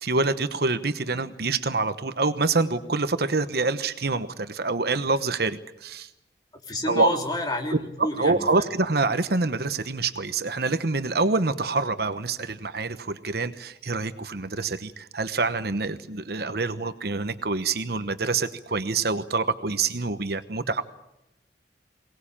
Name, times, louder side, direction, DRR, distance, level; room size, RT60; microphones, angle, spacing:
voice 1, 0.0-6.1 6.9-7.1 8.0-20.8, right 3 dB, 60° right, 11 dB, 1.1 m, -26 dB
voice 2, 6.6-8.6, left 1 dB, 20° left, 2 dB, 3.2 m, -29 dB
23.0 x 19.0 x 8.7 m, 0.86 s
head